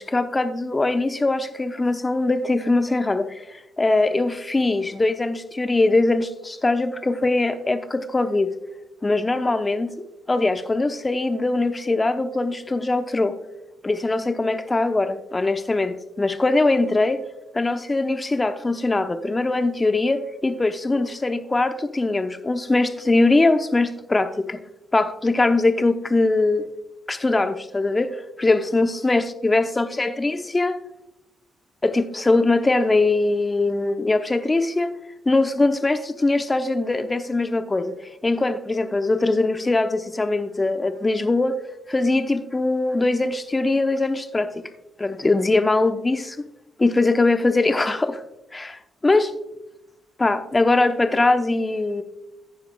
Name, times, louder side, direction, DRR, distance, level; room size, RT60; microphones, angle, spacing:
voice 1, 0.0-8.5 9.0-9.9 10.3-13.4 13.8-17.2 17.5-24.6 24.9-26.7 27.1-30.8 31.8-34.9 35.3-37.9 38.2-41.6 41.9-44.6 45.0-46.4 46.8-48.2 48.5-49.3 50.2-52.0, left 2 dB, 25° left, 0.8 m, -21 dB
15.5 x 9.7 x 2.3 m
hypercardioid pair, 45°, 0 cm